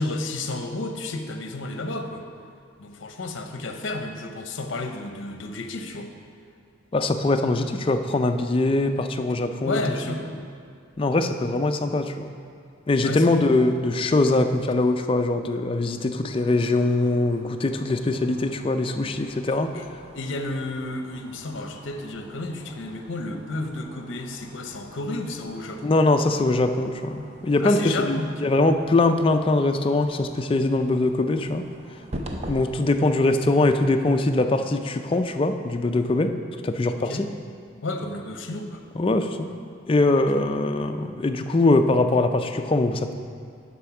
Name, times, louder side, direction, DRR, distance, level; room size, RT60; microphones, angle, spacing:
voice 1, 0.0-2.3 2.8-6.1 9.6-10.2 13.0-13.3 19.5-19.9 20.1-25.9 27.6-28.3 36.9-37.2 37.8-38.8, left 2 dB, 65° left, 5 dB, 0.7 m, -32 dB
voice 2, 6.9-9.8 11.0-12.3 12.9-19.8 25.8-31.6 32.5-36.3 36.6-37.3 38.9-39.5 39.9-43.1, left 2 dB, 25° left, 7 dB, 0.4 m, -22 dB
sound 1, 16.2-32.6, right 1 dB, 30° right, 0.6 m, -44 dB
10.5 x 4.3 x 5.8 m, 2.3 s
head